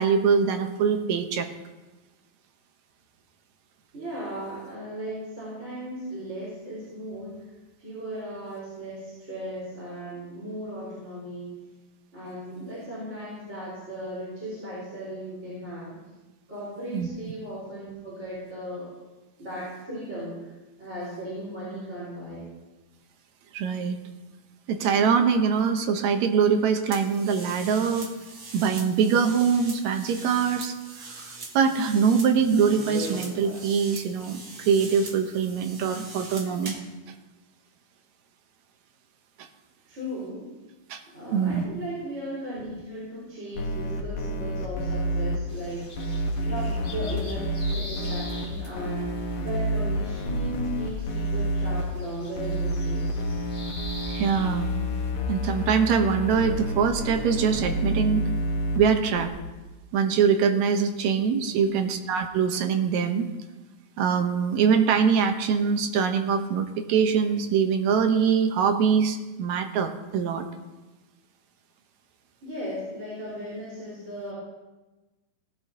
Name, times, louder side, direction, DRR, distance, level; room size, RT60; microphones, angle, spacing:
voice 1, 0.0-1.5 16.9-17.1 23.5-24.0 24.7-28.1 28.5-36.8 39.4-39.5 40.9-41.0 41.3-41.6 54.1-54.7 55.3-58.3 58.8-59.3 59.9-63.3 64.0-70.5, right 6 dB, 70° right, 6 dB, 2.0 m, -23 dB
voice 2, 3.9-7.4 7.8-11.5 12.1-16.0 16.5-18.9 19.4-20.5 20.8-22.4 39.9-40.5 41.1-46.0 46.4-49.1 49.4-53.2 61.5-61.9 72.4-74.3, equal, 20° right, -9 dB, 4.3 m, -36 dB
sound 1, 26.9-36.9, right 2 dB, 50° right, 1.0 m, -41 dB
sound 2, 43.6-45.4 46.0-48.5 48.8-51.8 52.4-58.8 59.2-59.3, equal, 85° left, 2.9 m, -29 dB
sound 3, 45.5-55.1, left 2 dB, 40° left, 0.7 m, -44 dB
18.0 x 12.0 x 2.8 m, 1.1 s
omnidirectional pair, 3.7 m